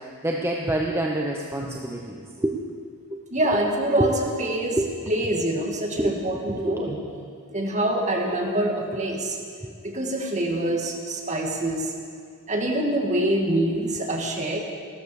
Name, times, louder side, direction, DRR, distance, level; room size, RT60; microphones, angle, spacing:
voice 1, 0.2-2.6 3.1-3.2 4.0-4.1 4.8-4.9 6.0-6.9 9.6-9.7, right 1 dB, 10° right, -1 dB, 0.9 m, -27 dB
voice 2, 3.3-4.8 5.1-7.0 7.5-9.4 9.8-11.9 12.5-14.6, right 1 dB, 35° right, 1 dB, 2.0 m, -25 dB
14.5 x 13.0 x 7.0 m, 2.2 s
head